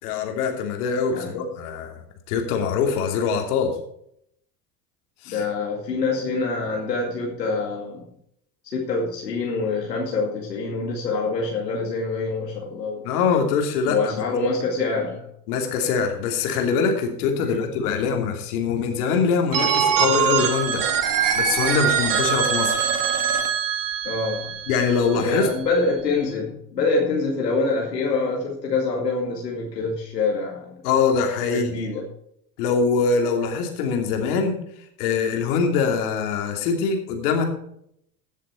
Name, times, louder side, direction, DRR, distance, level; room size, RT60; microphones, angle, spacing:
voice 1, 0.0-2.0 2.3-3.7 5.2-5.4 13.0-14.2 15.5-20.8 21.3-22.9 24.7-25.5 30.8-31.7 32.6-34.6 35.0-37.4, left 5 dB, 65° left, 3 dB, 2.9 m, -23 dB
voice 2, 5.3-8.0 8.7-13.0 13.9-15.3 17.4-17.7 24.0-24.5 25.1-30.8 31.5-32.0, left 3 dB, 85° left, -2 dB, 2.3 m, -25 dB
Telephone, 19.5-25.3, right 7 dB, 40° right, 1.9 m, -23 dB
15.5 x 7.4 x 4.5 m, 0.71 s
hypercardioid pair, 75°, 48 cm